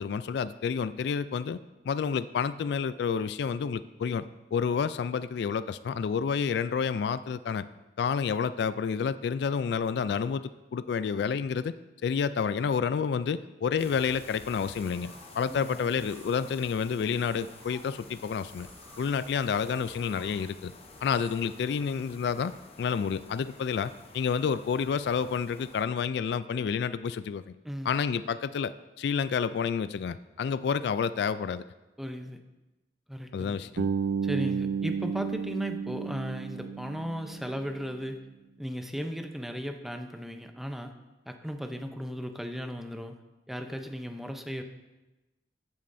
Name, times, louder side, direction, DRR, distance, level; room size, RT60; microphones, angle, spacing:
voice 1, 0.0-1.6 1.9-4.2 4.5-7.7 8.0-10.4 10.7-11.8 12.0-18.7 19.0-20.7 21.0-22.5 22.8-27.5 27.9-31.6 33.3-33.9, left 6 dB, 70° left, 15 dB, 0.3 m, -29 dB
sound 1, 13.8-25.8, left 3 dB, 35° left, 0.9 m, -51 dB
sound 2, 14.7-21.4, right 2 dB, 25° right, 1.5 m, -55 dB
voice 2, 15.5-16.0 27.6-27.9 32.0-32.4 33.1-33.6 34.2-38.2 38.6-40.9 41.3-43.2 43.5-44.6, equal, ahead, 5 dB, 0.6 m, -36 dB
Bass guitar, 33.8-37.7, right 6 dB, 70° right, 0.4 m, -32 dB
14.0 x 8.6 x 2.6 m, 1.1 s
head